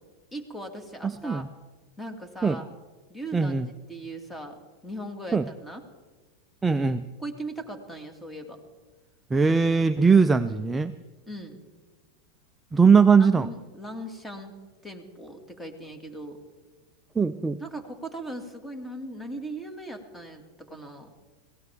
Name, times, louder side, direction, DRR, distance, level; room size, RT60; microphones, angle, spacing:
voice 1, 0.3-1.5 2.0-2.7 3.1-3.5 3.9-5.8 7.2-8.6 11.3-11.6 13.2-14.5 14.8-16.4 17.6-21.1, right 1 dB, 10° left, 5 dB, 2.1 m, -39 dB
voice 2, 1.0-1.5 2.4-2.6 3.3-3.7 5.3-5.4 6.6-7.1 9.3-10.9 12.7-13.5 17.2-17.6, right 5 dB, 10° right, 10 dB, 0.4 m, -20 dB
22.0 x 17.5 x 3.5 m, 1.3 s
supercardioid pair, 130°, 0 cm